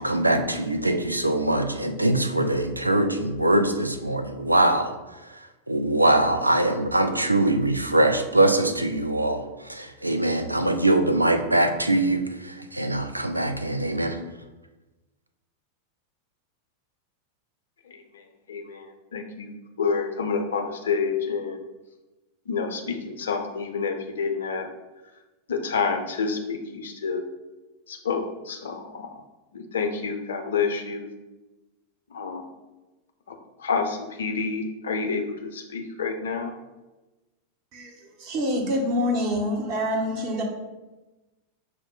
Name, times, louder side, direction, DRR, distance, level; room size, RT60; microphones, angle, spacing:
voice 1, 0.0-14.2, right 1 dB, 85° right, 7 dB, 0.4 m, -23 dB
voice 2, 17.9-19.5 19.8-21.6 22.5-24.7 25.5-27.2 27.9-29.2 29.5-31.1 32.1-32.4 33.3-36.5, left 5 dB, 65° left, 4 dB, 0.5 m, -29 dB
voice 3, 38.2-40.4, left 1 dB, 40° right, 1 dB, 0.9 m, -26 dB
5.9 x 2.1 x 3.8 m, 1.1 s
figure-of-eight pair, 90°, 0 cm